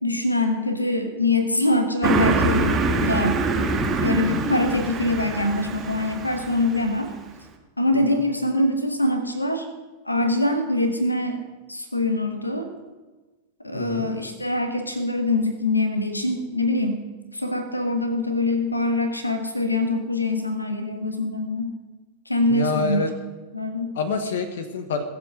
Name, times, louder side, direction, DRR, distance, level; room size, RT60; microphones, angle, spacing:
voice 1, 0.0-3.4 4.0-7.1 7.8-9.6 10.0-11.4 11.7-12.7 13.6-17.0 17.3-21.7 22.3-23.0 23.5-23.9, left 2 dB, 85° left, 7 dB, 1.4 m, -24 dB
Car passing by, 2.0-7.0, right 3 dB, 25° right, 2.0 m, -24 dB
voice 2, 13.7-14.1 22.5-23.1 23.9-25.0, left 4 dB, 60° left, 8 dB, 1.3 m, -27 dB
18.5 x 7.6 x 6.5 m, 1.2 s
figure-of-eight pair, 90°, 0 cm